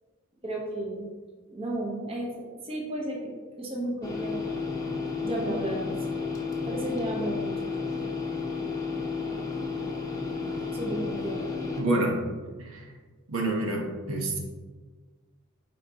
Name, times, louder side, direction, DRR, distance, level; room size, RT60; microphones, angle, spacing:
voice 1, 0.4-1.1 1.5-3.3 3.6-4.4 5.2-6.0 6.7-7.7 10.7-11.5, right 1 dB, 30° right, -1 dB, 1.1 m, -33 dB
sound 1, 4.0-11.8, left 4 dB, 15° left, 0.9 m, -32 dB
voice 2, 11.8-12.2 12.6-12.8 13.3-14.4, right 2 dB, 80° right, 0 dB, 1.2 m, -27 dB
9.1 x 4.2 x 3.0 m, 1.4 s
head